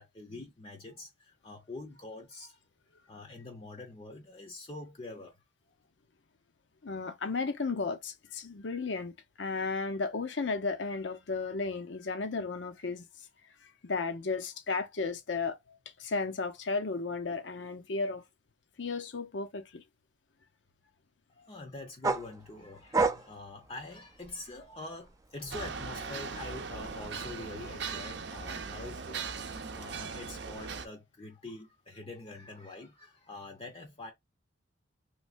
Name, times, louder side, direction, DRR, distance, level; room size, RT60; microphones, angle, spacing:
voice 1, 0.0-2.6 3.0-5.4 5.6-5.7 21.3-34.1, left 2 dB, 30° left, 0.6 m, -45 dB
voice 2, 6.8-13.0 13.6-18.2 18.8-19.8, left 4 dB, 70° left, 0.7 m, -34 dB
sound 1, 22.0-24.7 25.1-27.0, right 3 dB, 20° right, 0.4 m, -33 dB
sound 2, 25.5-30.9, right 5 dB, 65° right, 0.6 m, -39 dB
3.2 x 3.1 x 2.4 m
head